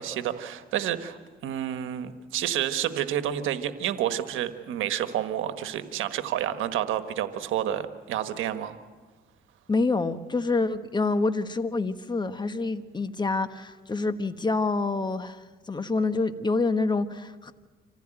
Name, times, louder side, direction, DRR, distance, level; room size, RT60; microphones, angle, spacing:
voice 1, 0.0-8.8, right 11 dB, 85° right, 10 dB, 1.4 m, -29 dB
voice 2, 9.7-17.5, left 3 dB, 20° left, 10 dB, 1.3 m, -27 dB
26.0 x 15.5 x 9.0 m, 1.3 s
cardioid pair, 90°, 20 cm